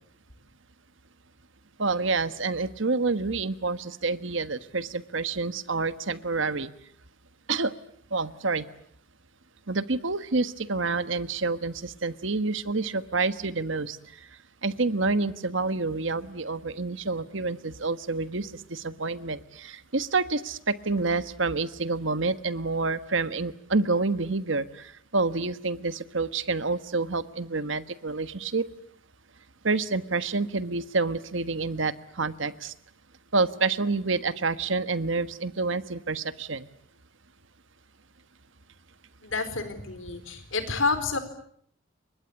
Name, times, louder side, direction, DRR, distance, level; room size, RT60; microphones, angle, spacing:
voice 1, 1.8-6.7 7.5-7.7 8.1-8.6 9.7-14.3 14.6-28.6 29.6-32.7 33.3-36.7, right 3 dB, 65° right, 13 dB, 1.4 m, -28 dB
voice 2, 39.2-41.2, left 4 dB, 70° left, 10 dB, 4.5 m, -29 dB
29.5 x 24.0 x 8.2 m, 0.65 s
head